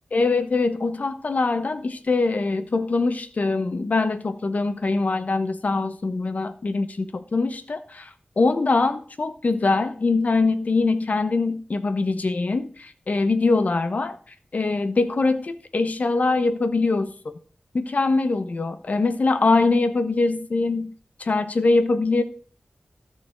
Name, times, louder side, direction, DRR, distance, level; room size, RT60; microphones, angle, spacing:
voice 1, 0.1-8.1 8.4-14.2 14.5-17.4 17.7-20.9 21.2-22.2, left 3 dB, 60° left, 0.9 m, -23 dB
13.0 x 6.7 x 3.8 m
wide cardioid pair, 90°, 3 cm